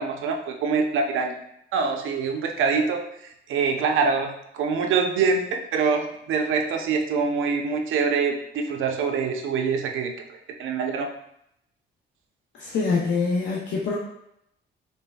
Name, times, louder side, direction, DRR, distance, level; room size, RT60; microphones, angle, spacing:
voice 1, 0.0-1.4 1.7-3.0 3.5-10.1 10.6-11.1, right 5 dB, 90° right, 3 dB, 0.6 m, -24 dB
voice 2, 12.5-14.0, left 4 dB, 65° left, -3 dB, 0.6 m, -25 dB
4.2 x 3.5 x 2.2 m, 0.77 s
cardioid pair, 150°, 20 cm